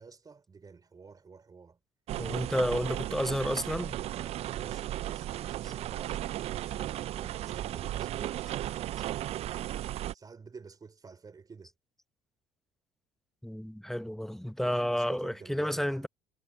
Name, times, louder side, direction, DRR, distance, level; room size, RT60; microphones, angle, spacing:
voice 1, 0.0-1.8 2.3-3.4 4.1-6.2 6.7-8.4 10.1-11.7 14.6-16.1, right 5 dB, 30° right, 3.4 m, -50 dB
sound 1, 2.1-10.1, right 13 dB, 55° right, 0.5 m, -35 dB
voice 2, 2.2-4.0 13.4-16.1, equal, ahead, 0.8 m, -31 dB
hypercardioid pair, 70°, 13 cm